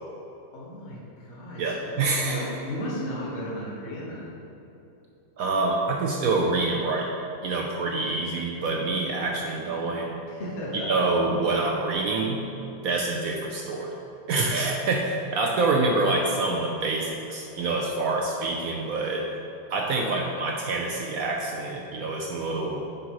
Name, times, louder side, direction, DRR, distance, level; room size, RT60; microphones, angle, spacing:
voice 1, 0.5-4.3 10.3-10.9 19.9-20.2, equal, 40° left, -6 dB, 1.3 m, -35 dB
voice 2, 1.6-2.5 5.4-7.1 7.4-10.2 10.7-12.4 12.8-13.9 14.3-19.4 19.7-22.8, right 3 dB, 75° right, 0 dB, 0.8 m, -26 dB
9.7 x 5.3 x 3.0 m, 2.9 s
omnidirectional pair, 2.1 m